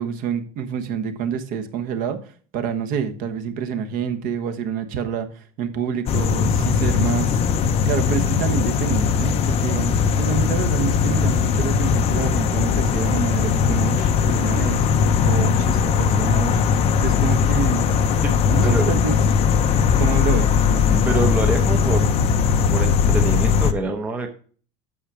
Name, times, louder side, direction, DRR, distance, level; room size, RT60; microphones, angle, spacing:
voice 1, 0.0-2.2 2.5-7.4 7.8-17.9 18.5-19.2 20.0-21.1, right 7 dB, 50° right, 7 dB, 1.2 m, -27 dB
sound 1, 6.1-23.7, left 6 dB, 35° left, 0.6 m, -19 dB
voice 2, 21.0-22.1 22.7-24.3, right 2 dB, 10° right, 3 dB, 0.7 m, -25 dB
8.6 x 6.2 x 4.9 m, 0.43 s
cardioid pair, 170°, 19 cm